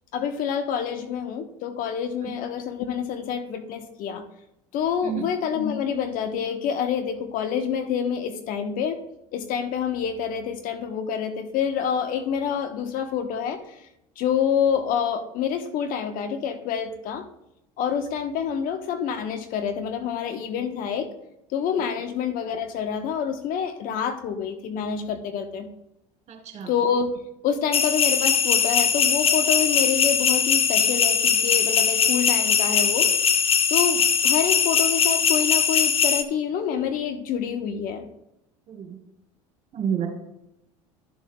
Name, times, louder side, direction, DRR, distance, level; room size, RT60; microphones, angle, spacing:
voice 1, 0.1-4.2 4.7-9.0 9.3-13.9 14.2-17.2 17.8-21.1 21.5-25.7 26.7-27.1 27.4-33.1 33.7-38.1, left 7 dB, 60° left, 6 dB, 1.1 m, -27 dB
voice 2, 26.3-26.7 38.7-39.0 39.7-40.1, right 8 dB, 45° right, 2 dB, 3.0 m, -29 dB
sound 1, 27.7-36.2, left 7 dB, 35° left, 0.9 m, -21 dB
12.5 x 7.2 x 2.3 m, 0.86 s
hypercardioid pair, 75°, 16 cm